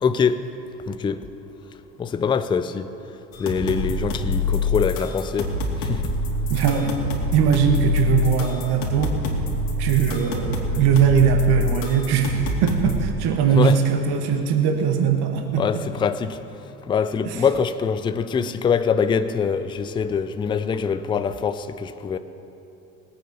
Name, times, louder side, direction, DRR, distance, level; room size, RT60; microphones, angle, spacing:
voice 1, 0.0-0.4 0.9-1.2 2.0-2.9 3.4-5.5 5.8-6.0 13.5-13.8 15.6-16.4 16.9-22.2, left 6 dB, 10° left, 0.4 m, -23 dB
sound 1, 3.3-13.1, left 2 dB, 60° left, 3.1 m, -26 dB
voice 2, 6.5-7.0 7.3-9.2 9.8-15.8 17.3-17.4 18.4-18.5, right 8 dB, 50° right, 1.9 m, -20 dB
20.5 x 8.9 x 5.6 m
hypercardioid pair, 75°, 50 cm